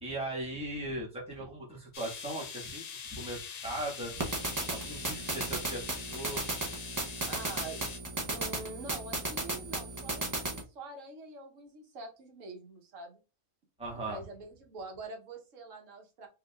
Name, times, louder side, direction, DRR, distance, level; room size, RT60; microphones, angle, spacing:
voice 1, 0.0-2.8 3.1-4.2 4.7-6.5 13.8-14.2, right 1 dB, 5° right, -4 dB, 1.3 m, -38 dB
sound 1, 1.9-8.0, left 6 dB, 75° left, 0.3 m, -43 dB
sound 2, 4.2-10.6, right 2 dB, 20° right, 0.5 m, -35 dB
voice 2, 7.3-7.8 8.3-13.2 13.9-16.3, right 3 dB, 90° right, 3 dB, 1.2 m, -45 dB
4.7 x 2.7 x 2.3 m, 0.32 s
omnidirectional pair, 1.3 m